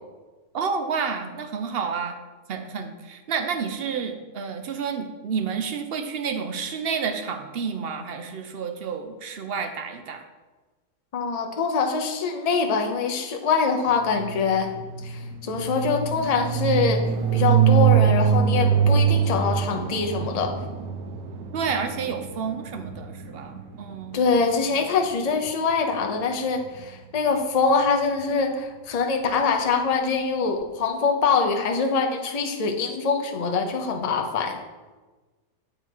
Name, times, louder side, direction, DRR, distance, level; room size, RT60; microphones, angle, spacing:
voice 1, 0.5-2.2 2.5-10.2 21.5-24.2, right 6 dB, 60° right, 7 dB, 0.7 m, -30 dB
voice 2, 11.1-14.7 15.0-17.0 17.3-20.5 24.1-34.6, left 4 dB, 40° left, 4 dB, 0.6 m, -24 dB
sound 1, 14.1-24.0, right 8 dB, 85° right, 1.1 m, -23 dB
9.2 x 3.8 x 4.5 m, 1.3 s
omnidirectional pair, 1.5 m